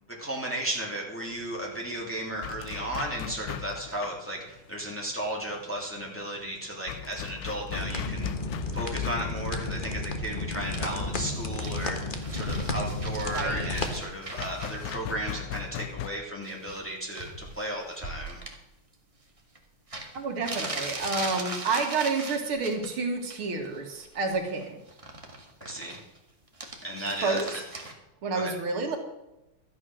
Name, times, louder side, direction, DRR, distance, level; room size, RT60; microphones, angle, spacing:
voice 1, 0.2-8.3 8.7-12.0 12.3-18.4 25.6-26.0 26.8-27.4 28.3-28.5, right 1 dB, 5° left, -3 dB, 3.0 m, -34 dB
sound 1, 1.3-16.1, left 10 dB, 70° left, 1.2 m, -40 dB
sound 2, 7.7-14.0, left 2 dB, 30° left, 1.0 m, -32 dB
sound 3, 10.6-14.9 16.4-16.9 17.1-18.5 19.5-19.6 19.9-22.9 23.2-23.7 23.9-26.2 26.5-27.9, right 2 dB, 15° right, 1.6 m, -39 dB
voice 2, 13.3-13.7 20.1-24.8 27.2-27.4 28.2-29.0, right 4 dB, 75° right, 3 dB, 2.7 m, -29 dB
13.0 x 9.6 x 6.2 m, 0.92 s
omnidirectional pair, 2.4 m